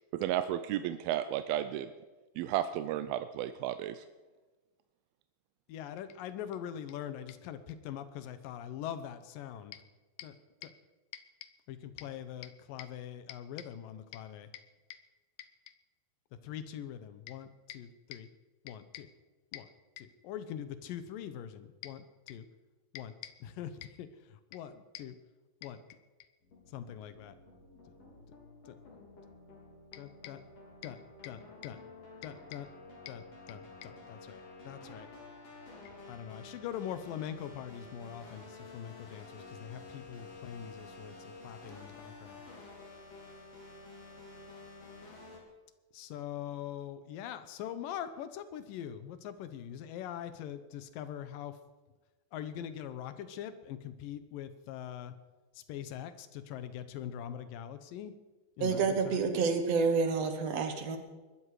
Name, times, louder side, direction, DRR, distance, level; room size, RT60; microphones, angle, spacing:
voice 1, 0.1-1.9 2.4-4.0, right 12 dB, 85° right, 11 dB, 2.4 m, -33 dB
voice 2, 5.7-9.8 10.2-10.3 10.6-10.7 11.1-11.2 11.7-14.6 14.9-15.0 16.4-18.3 18.6-19.1 19.5-19.7 20.0-22.5 22.9-24.1 24.5-25.2 25.6-25.8 26.7-27.3 29.9-30.4 30.8-31.0 31.2-31.8 32.2-32.7 33.1-35.1 36.1-41.2 41.4-42.4 45.9-51.5 52.3-55.1 55.6-58.1 58.6-59.2, left 10 dB, 75° left, 12 dB, 2.5 m, -42 dB
sound 1, 26.4-45.4, left 3 dB, 45° left, 4.6 m, -51 dB
voice 3, 58.6-61.0, right 4 dB, 60° right, 7 dB, 1.9 m, -29 dB
21.5 x 12.5 x 4.9 m, 1.2 s
omnidirectional pair, 4.3 m